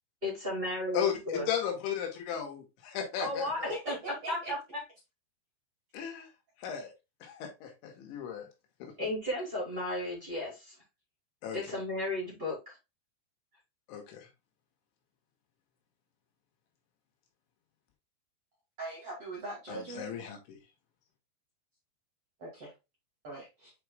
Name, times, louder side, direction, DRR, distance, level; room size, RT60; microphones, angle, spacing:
voice 1, 0.2-1.4 3.2-4.0 4.3-4.8 9.0-10.7 11.5-12.8, left 1 dB, 15° right, 2.7 m, -34 dB
voice 2, 0.9-3.7 5.9-6.3 6.6-6.9 7.2-8.5 8.8-8.9 11.4-11.6 13.9-14.3 19.7-20.6, left 8 dB, 80° left, 3.7 m, -35 dB
voice 3, 3.7-4.5 18.8-20.1 22.4-22.7 23.2-23.7, right 1 dB, 40° right, 2.3 m, -41 dB
8.8 x 4.8 x 2.2 m
omnidirectional pair, 5.4 m